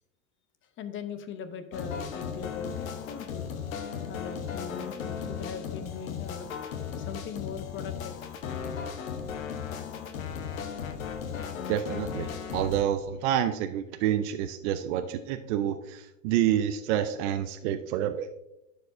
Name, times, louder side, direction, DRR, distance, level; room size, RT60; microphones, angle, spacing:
voice 1, 0.8-3.5 4.1-6.5 7.0-8.5, left 6 dB, 30° left, 10 dB, 0.7 m, -40 dB
sound 1, 1.7-12.8, left 7 dB, 80° left, 1.0 m, -36 dB
voice 2, 11.7-18.3, right 10 dB, 60° right, 8 dB, 0.6 m, -28 dB
11.0 x 4.8 x 2.6 m, 0.89 s
hypercardioid pair, 100°, 40 cm